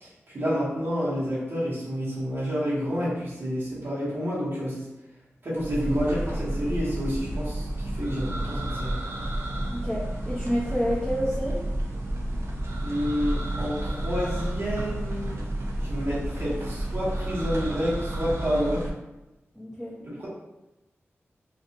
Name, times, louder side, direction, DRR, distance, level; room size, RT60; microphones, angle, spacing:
voice 1, 0.0-4.8 5.4-9.0 12.8-15.5 15.8-18.9 20.0-20.3, equal, 55° right, -9 dB, 1.1 m, -29 dB
sound 1, 5.6-18.9, right 1 dB, 75° right, 0.5 m, -31 dB
voice 2, 9.7-11.6 19.6-20.0, equal, 5° right, -7 dB, 0.6 m, -29 dB
2.8 x 2.5 x 2.5 m, 0.97 s
wide cardioid pair, 90°, 5 cm